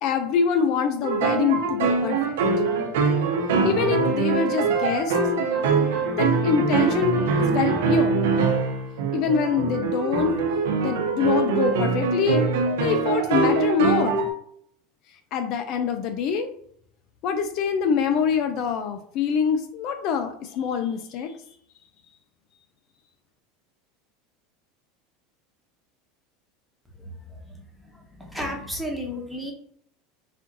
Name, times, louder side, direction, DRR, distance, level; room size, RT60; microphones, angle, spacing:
voice 1, 0.0-2.2 3.6-5.2 6.2-8.2 9.1-10.4 10.8-12.5 12.8-14.3 15.3-16.5 17.2-21.4, left 6 dB, 55° left, 7 dB, 0.5 m, -25 dB
sound 1, 1.0-14.3, right 4 dB, 90° right, 0.8 m, -23 dB
voice 2, 28.2-29.5, equal, ahead, -1 dB, 1.0 m, -31 dB
4.3 x 2.5 x 3.8 m, 0.65 s
supercardioid pair, 130°, 0 cm